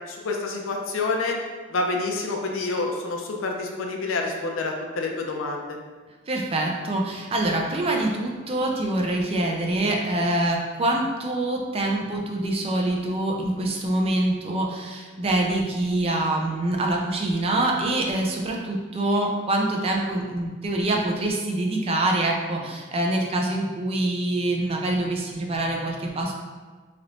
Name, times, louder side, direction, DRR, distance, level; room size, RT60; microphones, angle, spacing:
voice 1, 0.1-1.4 1.7-5.8, left 3 dB, 70° left, 2 dB, 0.5 m, -28 dB
voice 2, 6.3-26.3, right 1 dB, 30° right, 0 dB, 0.4 m, -25 dB
3.3 x 2.9 x 2.5 m, 1.4 s
head